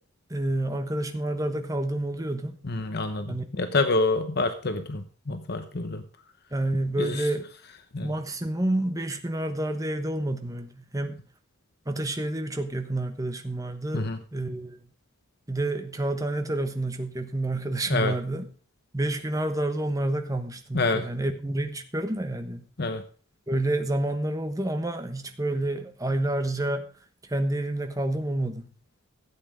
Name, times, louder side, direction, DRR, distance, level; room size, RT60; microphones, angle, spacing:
voice 1, 0.3-2.6 3.3-3.5 6.5-7.4 8.0-11.2 11.9-14.8 15.5-18.5 18.9-22.6 23.5-26.9 27.2-28.7, right 1 dB, 15° right, 7 dB, 1.1 m, -29 dB
voice 2, 2.6-6.0 7.0-7.3 7.9-8.1 13.9-14.2 17.9-18.1 20.7-21.0 22.8-23.0, left 3 dB, 50° left, 9 dB, 0.9 m, -27 dB
13.0 x 8.4 x 5.0 m, 0.41 s
head